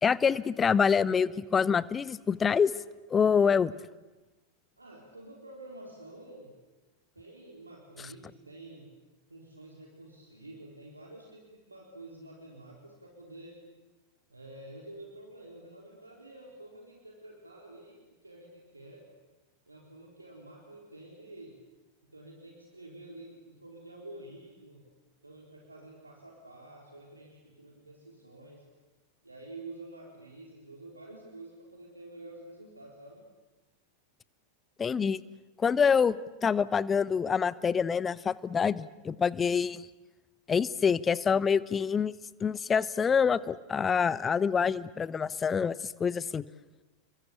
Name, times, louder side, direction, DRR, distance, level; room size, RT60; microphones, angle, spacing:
voice 1, 0.0-2.7 3.1-3.7 34.8-35.2 35.6-36.2 36.4-39.9 40.5-42.1 42.4-46.4, left 6 dB, 20° left, 19 dB, 0.9 m, -26 dB
voice 2, 4.8-6.5 7.1-8.9 9.3-13.6 14.3-19.1 19.7-21.6 22.1-24.8 25.2-28.7 29.2-33.3, right 2 dB, 80° right, -1 dB, 4.0 m, -49 dB
30.0 x 23.0 x 8.6 m, 1.1 s
figure-of-eight pair, 90°, 0 cm